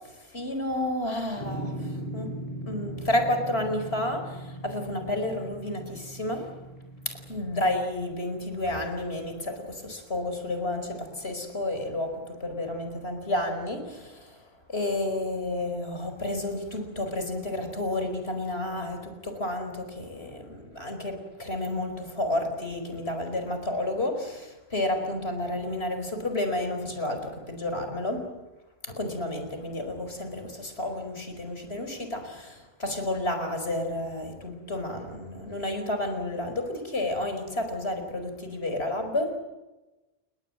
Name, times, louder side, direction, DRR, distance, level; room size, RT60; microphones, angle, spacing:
voice 1, 0.0-2.4 2.7-6.6 7.0-14.4 14.7-28.4 28.8-39.4, left 1 dB, 70° left, 7 dB, 5.1 m, -31 dB
sound 1, 1.4-7.8, right 1 dB, 40° left, 4.9 m, -39 dB
29.5 x 20.5 x 7.8 m, 1.1 s
omnidirectional pair, 1.1 m